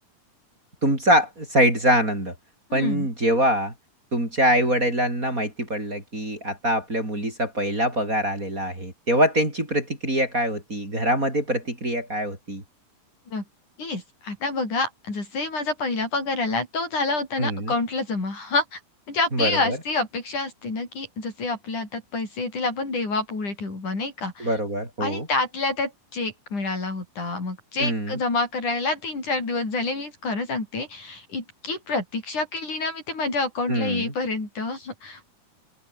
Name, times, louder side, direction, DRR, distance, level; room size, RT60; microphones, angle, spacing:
voice 1, 0.8-2.3 2.7-3.7 4.1-12.6 17.4-17.7 19.3-19.8 24.4-25.3 27.8-28.2 33.7-34.1, equal, 20° right, 7.3 m, -24 dB
voice 2, 2.7-3.1 13.3-13.4 13.8-18.8 19.1-24.5 25.0-35.2, left 3 dB, 50° left, 9.0 m, -28 dB
open air
omnidirectional pair, 4.4 m